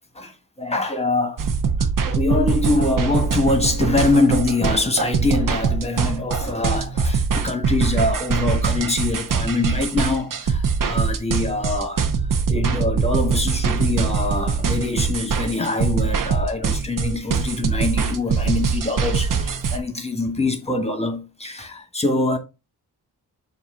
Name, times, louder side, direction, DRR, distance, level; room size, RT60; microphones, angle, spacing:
voice 1, 0.1-1.4 1.8-12.1 12.5-22.4, left 2 dB, 15° left, 1.4 m, -24 dB
sound 1, 1.4-19.8, right 5 dB, 55° right, 0.8 m, -23 dB
7.2 x 2.7 x 5.5 m
wide cardioid pair, 125°, 39 cm